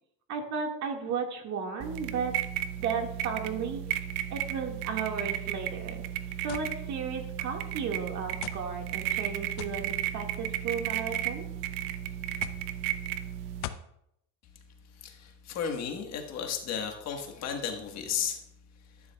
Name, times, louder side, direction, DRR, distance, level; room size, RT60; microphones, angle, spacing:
voice 1, 0.3-2.3 2.8-6.0 6.4-11.5, right 6 dB, 50° right, 2 dB, 1.9 m, -34 dB
sound 1, 1.8-13.7, right 11 dB, 70° right, 0.8 m, -34 dB
sound 2, 6.5-6.7 7.6-7.7 8.4-8.7 9.6-9.8 10.8-11.2 12.4-12.7 13.6-13.9, left 12 dB, 70° left, 0.7 m, -40 dB
voice 2, 15.0-18.4, left 7 dB, 50° left, 4 dB, 1.5 m, -34 dB
12.5 x 10.0 x 2.3 m, 0.78 s
cardioid pair, 150°, 35 cm